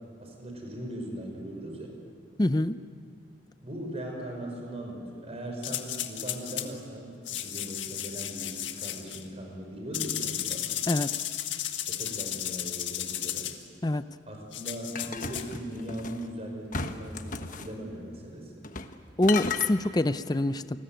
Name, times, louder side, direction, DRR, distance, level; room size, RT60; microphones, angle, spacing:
voice 1, 0.2-2.0 3.6-10.6 11.9-13.5 14.3-18.7, equal, 35° right, 2 dB, 5.8 m, -39 dB
voice 2, 2.4-2.8 10.9-11.1 13.8-14.0 19.2-20.8, left 1 dB, 20° left, 12 dB, 0.5 m, -25 dB
sound 1, 5.6-6.7 7.3-9.2 9.9-13.6 14.5-15.5, left 11 dB, 75° left, 1.7 m, -34 dB
sound 2, 14.9-16.2 16.7-17.7 18.6-19.0 19.2-19.7, left 4 dB, 45° left, 1.2 m, -34 dB
29.0 x 20.5 x 9.1 m, 2.5 s
head